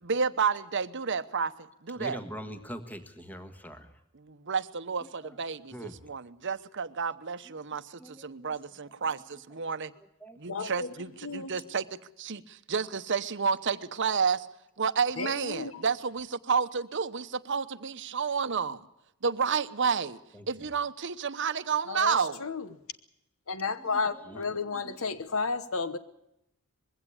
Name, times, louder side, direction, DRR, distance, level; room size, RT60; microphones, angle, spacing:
voice 1, 0.0-1.5 1.8-2.2 4.1-9.9 10.4-11.9 12.2-14.5 14.8-18.8 19.2-20.2 20.5-22.4, right 5 dB, 55° right, 0.9 m, -30 dB
voice 2, 1.9-3.9 5.2-5.4 5.7-5.9 8.0-8.5 10.2-10.4 20.3-20.7 24.1-25.0, equal, 10° left, 1.4 m, -43 dB
voice 3, 10.5-10.9 11.2-11.6 15.2-15.8 21.9-22.7 23.5-26.0, left 4 dB, 70° left, 1.1 m, -32 dB
21.5 x 16.0 x 8.5 m
head